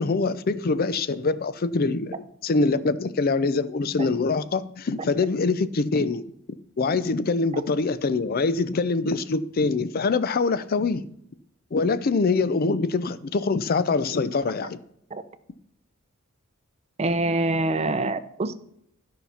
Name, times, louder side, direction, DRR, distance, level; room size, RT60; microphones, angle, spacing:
voice 1, 0.0-6.2 6.8-11.0 11.7-14.8, left 3 dB, 45° left, 0.5 m, -24 dB
voice 2, 17.0-18.6, right 2 dB, 30° right, 0.6 m, -25 dB
12.5 x 5.7 x 5.7 m
head